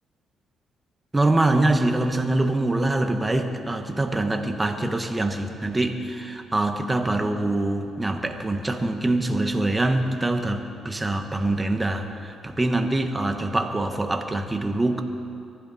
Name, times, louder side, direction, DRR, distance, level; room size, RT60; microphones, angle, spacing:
voice 1, 1.1-15.0, right 2 dB, 15° right, 5 dB, 1.4 m, -24 dB
22.0 x 15.0 x 4.3 m, 2.6 s
cardioid pair, 90°, 0 cm